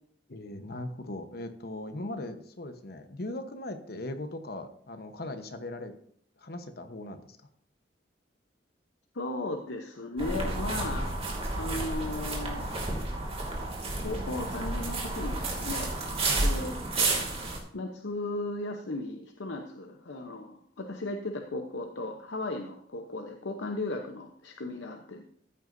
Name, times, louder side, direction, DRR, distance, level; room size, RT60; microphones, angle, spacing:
voice 1, 0.3-5.9 6.4-7.4 16.3-16.5, left 1 dB, 55° left, 8 dB, 1.1 m, -39 dB
voice 2, 9.1-11.1 11.4-12.8 14.0-15.9 16.4-17.3 17.7-25.2, left 2 dB, 80° left, 3 dB, 0.9 m, -36 dB
sound 1, 10.2-17.6, right 2 dB, 35° right, 2.4 m, -31 dB
14.0 x 9.4 x 2.7 m, 0.64 s
head